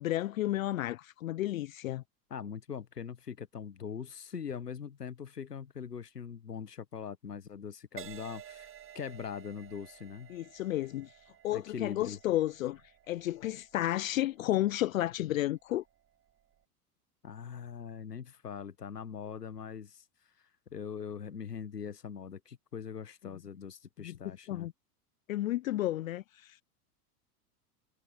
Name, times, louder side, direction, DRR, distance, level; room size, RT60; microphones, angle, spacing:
voice 1, 0.0-2.0 10.3-11.1 11.4-12.8 13.1-15.8 24.0-24.7 25.3-26.6, left 14 dB, 60° left, 0.8 m, -32 dB
voice 2, 2.3-10.3 11.5-12.2 17.2-24.7, left 7 dB, 80° left, 1.1 m, -42 dB
Crash cymbal, 8.0-15.6 16.3-16.6, right 10 dB, 25° right, 6.2 m, -53 dB
figure-of-eight pair, 85°, 47 cm